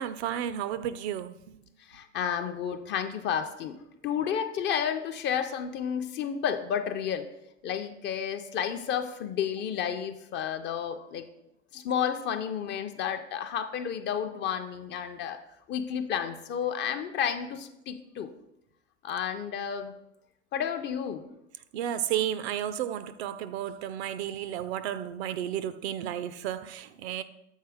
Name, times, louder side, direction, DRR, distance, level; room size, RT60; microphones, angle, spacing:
voice 1, 0.0-1.4 21.7-27.2, right 10 dB, 60° right, 0.5 m, -32 dB
voice 2, 1.9-3.8 4.0-7.3 7.6-11.3 11.7-15.4 15.7-18.3 19.0-19.9 20.5-21.3, left 8 dB, 30° left, 0.5 m, -31 dB
7.2 x 4.3 x 3.5 m
hypercardioid pair, 85°, 36 cm